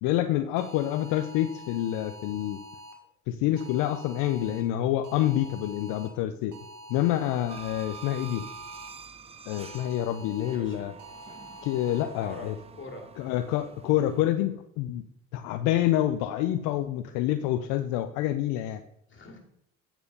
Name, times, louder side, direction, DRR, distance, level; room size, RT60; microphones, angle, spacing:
voice 1, 0.0-2.6 3.3-6.5 6.9-8.5 9.5-10.9 11.6-12.5 13.2-15.0 15.3-18.8, left 13 dB, 70° left, 9 dB, 0.6 m, -27 dB
sound 1, 0.6-2.9 3.6-4.6 5.0-6.1 6.5-8.9 9.5-10.6 11.0-12.0, equal, 65° right, 1.9 m, -46 dB
sound 2, 7.5-14.3, right 6 dB, 20° right, 0.7 m, -47 dB
voice 2, 10.5-10.9 11.9-13.1 19.1-19.4, left 2 dB, 35° left, 2 dB, 2.7 m, -44 dB
8.8 x 4.6 x 5.3 m, 0.74 s
hypercardioid pair, 65°, 33 cm